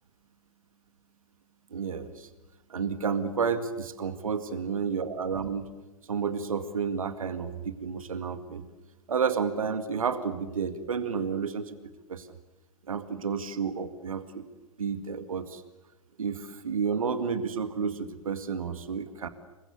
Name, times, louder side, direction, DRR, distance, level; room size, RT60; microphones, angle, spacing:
voice 1, 1.7-2.3 2.7-5.6 6.1-8.6 9.1-11.8 12.1-12.3 12.9-14.5 14.8-15.6 16.2-19.3, right 6 dB, 75° right, 11 dB, 2.0 m, -31 dB
28.5 x 23.5 x 8.1 m, 1.1 s
figure-of-eight pair, 105°, 18 cm